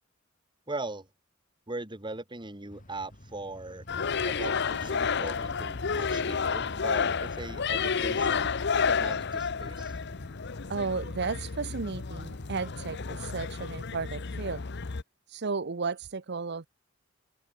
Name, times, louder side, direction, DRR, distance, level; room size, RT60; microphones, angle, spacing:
voice 1, 0.7-1.1 1.7-3.8 4.2-8.5 8.8-9.9, right 2 dB, 25° right, 2.6 m, -40 dB
sound 1, 2.7-13.6, equal, 45° left, 4.6 m, -48 dB
sound 2, 3.9-15.0, left 5 dB, 60° left, 0.9 m, -31 dB
voice 2, 10.7-14.6 15.3-16.7, right 4 dB, 55° right, 0.8 m, -34 dB
head